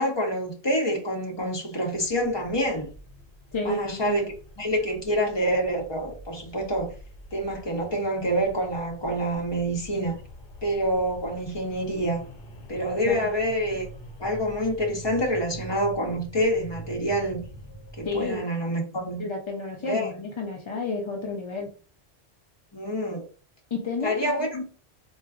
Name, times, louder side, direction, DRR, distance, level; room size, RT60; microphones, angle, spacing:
voice 1, 0.0-2.9 3.6-4.3 4.6-6.9 7.3-10.1 10.6-12.2 12.7-13.9 14.2-17.4 18.0-19.3 19.8-20.1 22.7-23.2 24.0-24.6, equal, 25° left, 0.7 m, -27 dB
sound 1, 1.9-18.4, equal, 70° left, 0.9 m, -45 dB
voice 2, 3.5-4.3 13.0-13.3 18.0-18.4 19.2-21.7 23.7-24.6, left 3 dB, 45° left, 0.4 m, -31 dB
3.7 x 2.4 x 2.4 m
omnidirectional pair, 1.1 m